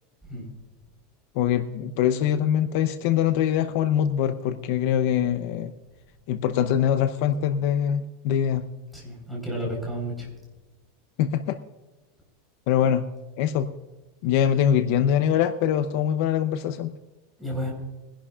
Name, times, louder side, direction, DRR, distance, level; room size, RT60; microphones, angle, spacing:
voice 1, 1.4-5.7 6.3-8.6 11.2-11.6 12.7-13.0 13.4-13.7 14.2-16.9, left 9 dB, 50° left, 8 dB, 0.7 m, -23 dB
voice 2, 8.9-10.3 17.4-17.7, equal, 5° right, -2 dB, 4.3 m, -31 dB
23.0 x 11.5 x 2.4 m, 1.1 s
supercardioid pair, 170°, 0 cm